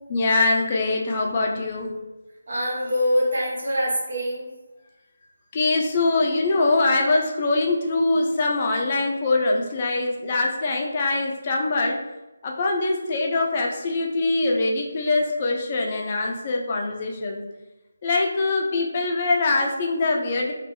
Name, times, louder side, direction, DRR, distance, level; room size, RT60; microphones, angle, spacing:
voice 1, 0.1-1.9 5.5-12.0 12.4-17.4 18.0-20.5, left 2 dB, 35° left, 0 dB, 0.5 m, -23 dB
voice 2, 2.5-4.5, equal, 65° right, -4 dB, 1.2 m, -24 dB
3.1 x 2.5 x 3.1 m, 1.0 s
figure-of-eight pair, 155°, 0 cm